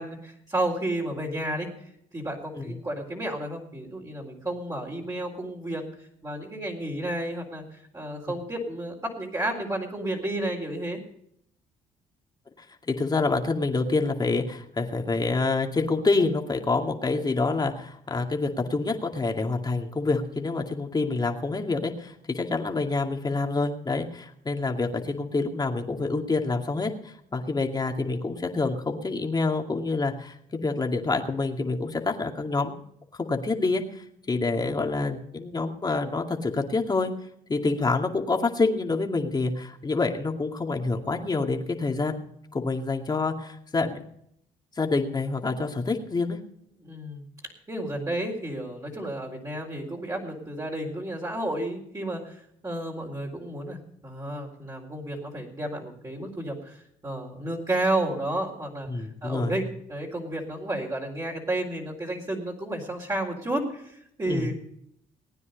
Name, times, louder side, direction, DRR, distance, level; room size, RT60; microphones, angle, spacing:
voice 1, 0.0-1.7 2.1-5.8 6.2-11.0 46.8-64.5, right 1 dB, 25° right, -2 dB, 4.1 m, -32 dB
voice 2, 12.9-32.8 33.1-37.1 37.5-42.2 42.5-44.0 44.8-46.4 58.9-59.5 64.3-64.5, left 3 dB, 30° left, 3 dB, 2.4 m, -27 dB
19.0 x 9.6 x 5.3 m, 0.72 s
supercardioid pair, 75°, 15 cm